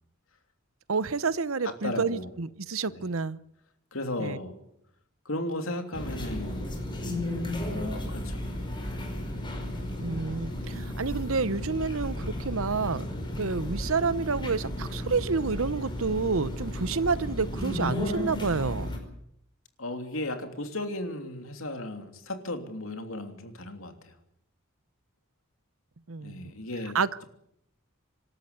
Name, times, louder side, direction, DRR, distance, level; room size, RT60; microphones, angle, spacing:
voice 1, 0.9-3.4 4.2-4.4 10.0-13.0 13.4-18.9 26.1-26.5 26.9-27.2, right 4 dB, 70° right, 17 dB, 0.9 m, -29 dB
voice 2, 1.6-2.3 2.9-3.0 3.9-4.5 5.2-6.6 7.8-8.5 19.8-24.1 26.2-27.0, left 1 dB, 70° left, 6 dB, 3.1 m, -35 dB
sound 1, 5.9-19.0, left 1 dB, 20° left, 5.2 m, -34 dB
26.0 x 13.0 x 9.6 m, 0.75 s
head